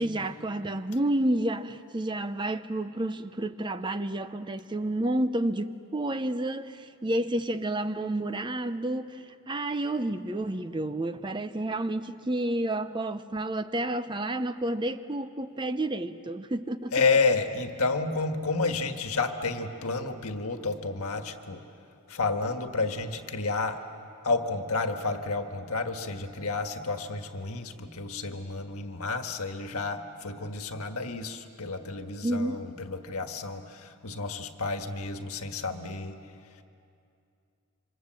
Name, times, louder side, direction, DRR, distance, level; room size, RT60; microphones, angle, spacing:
voice 1, 0.0-16.9 32.2-32.6, right 1 dB, 20° right, 0.6 m, -30 dB
voice 2, 16.9-21.6 22.1-23.8 24.2-36.2, left 3 dB, 80° left, 1.6 m, -30 dB
27.0 x 25.5 x 7.6 m
head